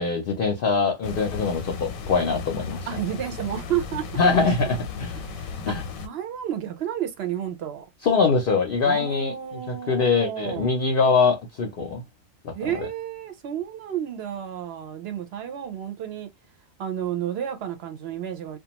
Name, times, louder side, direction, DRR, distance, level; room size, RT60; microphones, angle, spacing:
voice 1, 0.0-2.9 4.2-5.2 5.7-5.8 8.0-9.3 9.7-12.0 12.4-12.9, left 4 dB, 60° left, 0.6 m, -23 dB
sound 1, 1.0-6.1, left 5 dB, 85° left, 1.0 m, -35 dB
voice 2, 2.9-4.8 5.2-5.7 6.0-7.8 8.8-10.7 12.5-16.3 16.8-18.6, right 10 dB, 60° right, 0.7 m, -31 dB
2.4 x 2.2 x 2.8 m
omnidirectional pair, 1.4 m